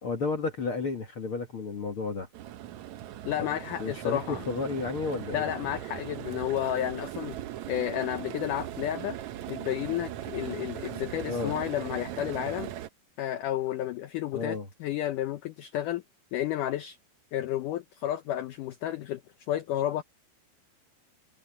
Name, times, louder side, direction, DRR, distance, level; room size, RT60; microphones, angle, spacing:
voice 1, 0.0-2.3 3.4-3.5 3.8-5.5 11.3-11.5 14.3-14.7, left 4 dB, 45° left, 1.8 m, -32 dB
sound 1, 2.3-12.9, right 12 dB, 85° right, 1.6 m, -39 dB
voice 2, 3.3-4.4 5.3-7.4 7.7-9.2 9.5-12.7 13.2-16.0 16.3-17.0 17.3-19.2 19.5-20.0, left 12 dB, 75° left, 2.0 m, -31 dB
omnidirectional pair, 4.6 m